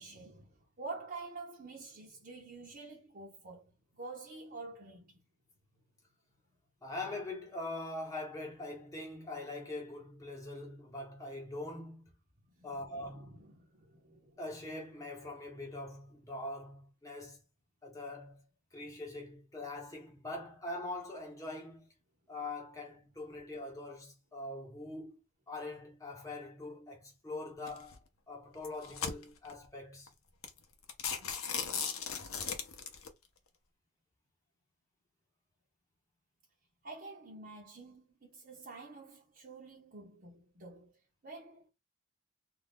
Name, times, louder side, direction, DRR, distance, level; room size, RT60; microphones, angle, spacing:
voice 1, 0.0-5.2 12.5-14.4 36.8-41.0 41.2-41.6, right 3 dB, 40° right, 0.8 m, -48 dB
voice 2, 6.8-12.1 12.6-13.4 14.4-17.4 17.8-18.4 18.7-21.9 22.3-25.2 25.5-30.1, left 2 dB, 15° left, 1.1 m, -43 dB
sound 1, 27.7-27.9 28.5-29.5 30.1-30.2 30.4-30.6 30.9-33.1, left 6 dB, 70° left, 0.7 m, -37 dB
2.5 x 2.4 x 3.4 m
head